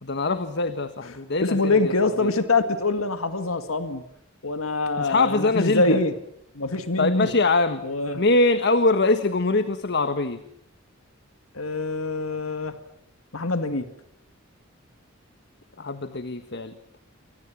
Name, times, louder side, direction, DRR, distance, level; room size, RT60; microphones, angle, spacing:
voice 1, 0.0-1.9 2.2-2.3 5.0-6.0 7.0-7.8 8.2-10.4 15.8-16.7, left 3 dB, 55° left, 10 dB, 1.5 m, -23 dB
voice 2, 1.4-4.0 4.4-6.1 6.6-7.3 7.8-8.2 11.5-12.8 13.3-13.9, left 3 dB, 90° left, 8 dB, 2.0 m, -24 dB
29.0 x 25.0 x 7.4 m, 0.74 s
head